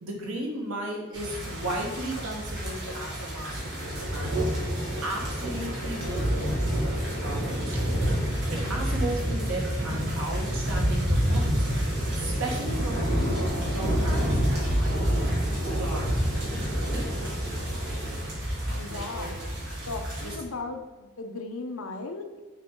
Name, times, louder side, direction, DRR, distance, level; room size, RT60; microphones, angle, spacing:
voice 1, 0.0-4.4 5.0-8.0 8.5-11.6 12.1-13.0 13.7-15.3 15.7-16.1 16.9-17.1 18.9-19.4 20.2-20.4, right 1 dB, 70° right, 0 dB, 1.4 m, -36 dB
sound 1, 1.1-20.3, equal, 50° right, 1.8 m, -28 dB
voice 2, 18.8-19.3 19.9-22.4, left 3 dB, 75° left, 5 dB, 0.7 m, -36 dB
6.5 x 4.0 x 3.7 m, 1.3 s
head